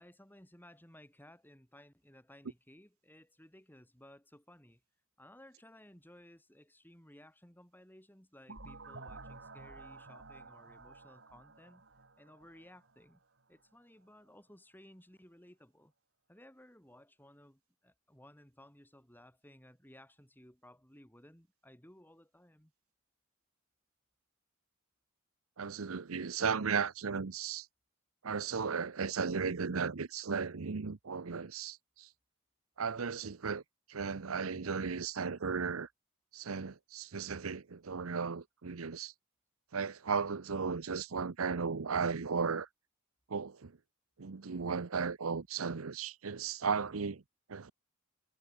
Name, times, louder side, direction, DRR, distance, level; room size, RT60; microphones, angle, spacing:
voice 1, 0.0-4.8 5.2-11.8 12.2-13.2 13.5-15.9 16.3-22.7, left 1 dB, 10° left, 7.7 m, -58 dB
sound 1, 8.5-13.2, right 3 dB, 60° right, 5.8 m, -52 dB
voice 2, 25.6-27.7 28.2-32.1 32.8-33.6 33.9-35.9 36.3-39.1 39.7-42.7 43.3-43.7 44.2-47.2 47.5-47.7, right 5 dB, 85° right, 0.8 m, -35 dB
head